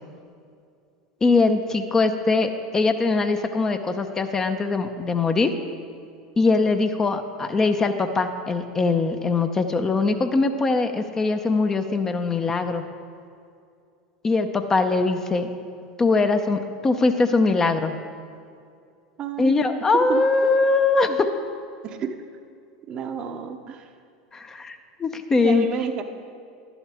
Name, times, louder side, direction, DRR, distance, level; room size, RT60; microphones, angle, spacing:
voice 1, 1.2-5.5 6.4-12.8 14.2-15.5 16.0-17.9 19.4-21.3 24.3-25.7, left 3 dB, 20° left, 7 dB, 0.7 m, -22 dB
voice 2, 19.2-19.6 20.1-20.2 21.8-22.1 22.9-23.9 25.4-26.0, right 7 dB, 40° right, 7 dB, 0.8 m, -30 dB
11.5 x 11.0 x 3.5 m, 2.4 s
hypercardioid pair, 80°, 2 cm